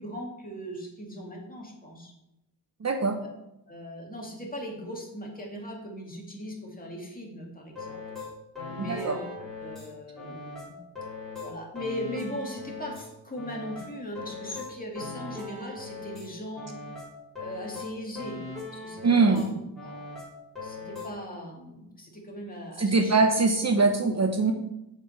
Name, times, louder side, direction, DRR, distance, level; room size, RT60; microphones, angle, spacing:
voice 1, 0.0-2.1 3.7-8.0 8.7-9.3 9.6-10.8 11.4-16.7 17.4-18.4 18.7-19.4 19.8-20.1 20.6-23.2, equal, 20° left, -1 dB, 2.1 m, -39 dB
voice 2, 2.8-3.2 8.8-9.2 19.0-19.4 22.8-24.5, right 3 dB, 40° right, 4 dB, 0.8 m, -22 dB
sound 1, 7.8-9.9 10.2-13.1 13.4-16.3 16.6-19.5 19.8-21.1, left 3 dB, ahead, 3.5 m, -40 dB
7.3 x 5.3 x 6.4 m, 0.88 s
wide cardioid pair, 135°, 40 cm